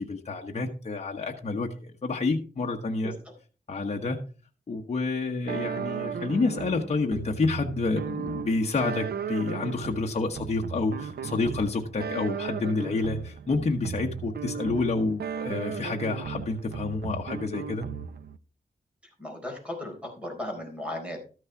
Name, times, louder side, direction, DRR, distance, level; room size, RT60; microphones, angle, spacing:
voice 1, 0.0-3.1 3.7-4.2 4.7-17.8, left 3 dB, 40° left, 1 dB, 1.1 m, -29 dB
voice 2, 3.0-3.4 19.0-21.2, left 1 dB, 5° right, 1 dB, 4.4 m, -36 dB
sound 1, 5.5-18.4, right 7 dB, 80° right, 0.7 m, -36 dB
13.5 x 6.4 x 4.6 m, 0.37 s
wide cardioid pair, 130°, 16 cm